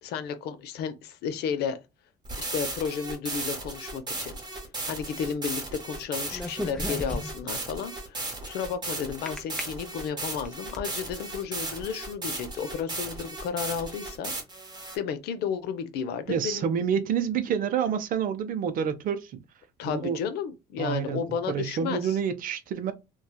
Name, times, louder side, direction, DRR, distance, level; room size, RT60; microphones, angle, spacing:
voice 1, 0.0-1.8 2.4-4.3 4.9-14.3 14.9-16.7 19.8-22.2, left 7 dB, 75° left, 0.6 m, -33 dB
sound 1, 2.2-15.0, right 2 dB, 25° right, 1.0 m, -36 dB
sound 2, 6.3-7.5 9.3-9.6 10.2-10.9, left 1 dB, 5° left, 0.6 m, -34 dB
voice 2, 16.3-19.4 19.8-20.2 20.8-22.9, right 8 dB, 55° right, 0.5 m, -28 dB
2.8 x 2.3 x 2.2 m
cardioid pair, 110°, 17 cm